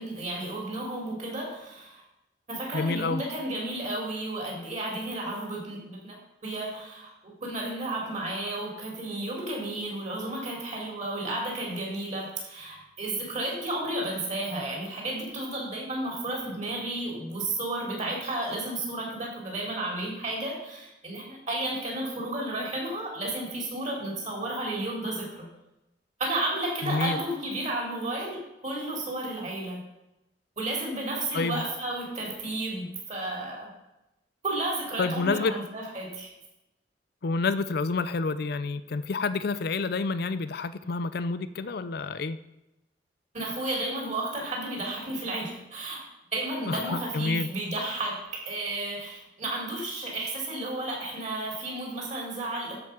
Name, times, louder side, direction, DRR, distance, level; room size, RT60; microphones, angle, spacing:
voice 1, 0.0-2.0 2.5-6.2 6.4-25.5 26.2-29.8 30.6-33.7 34.4-36.3 43.3-46.0 46.3-52.7, right 1 dB, 40° right, -2 dB, 3.3 m, -32 dB
voice 2, 2.7-3.2 26.8-27.2 31.3-31.6 35.0-35.5 37.2-42.4 46.7-47.5, left 4 dB, 60° left, 13 dB, 0.5 m, -28 dB
13.0 x 4.9 x 6.0 m, 0.92 s
head